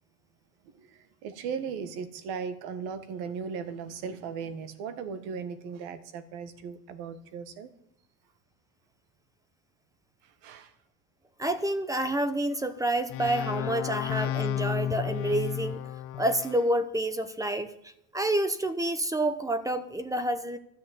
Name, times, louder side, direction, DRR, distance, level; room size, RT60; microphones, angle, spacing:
voice 1, 0.6-7.7 10.2-10.7, right 6 dB, 75° right, 12 dB, 1.6 m, -37 dB
voice 2, 11.4-15.9 16.2-20.6, right 1 dB, 10° right, 12 dB, 0.8 m, -28 dB
sound 1, 13.1-16.7, left 11 dB, 35° left, 0.5 m, -32 dB
13.5 x 6.5 x 9.5 m, 0.81 s
cardioid pair, 140°, 38 cm